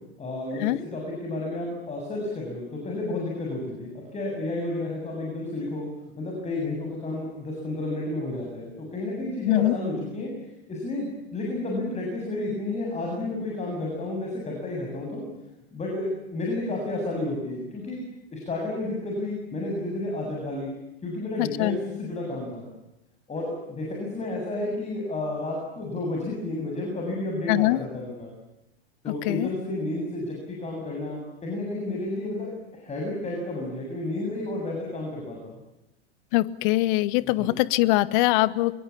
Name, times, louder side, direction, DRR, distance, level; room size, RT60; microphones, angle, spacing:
voice 1, 0.2-5.9 6.2-10.3 10.7-15.2 15.7-18.0 18.3-20.7 21.0-22.7 23.3-28.3 29.0-35.5 37.2-37.5, left 2 dB, 20° left, 0 dB, 7.7 m, -31 dB
voice 2, 21.4-21.8 27.5-27.8 29.3-29.5 36.3-38.7, left 18 dB, 50° left, 18 dB, 1.2 m, -22 dB
26.0 x 22.5 x 8.6 m, 0.92 s
figure-of-eight pair, 90°, 32 cm